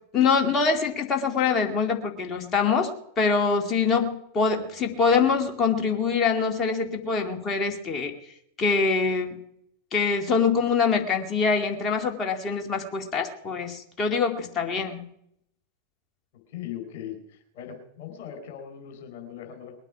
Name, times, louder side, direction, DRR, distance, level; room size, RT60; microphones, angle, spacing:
voice 1, 0.1-8.1 8.6-9.4 9.9-15.0, left 5 dB, 25° left, 3 dB, 2.4 m, -24 dB
voice 2, 16.5-19.7, left 10 dB, 50° left, 5 dB, 4.1 m, -39 dB
21.0 x 8.9 x 5.9 m, 0.73 s
figure-of-eight pair, 90°, 0 cm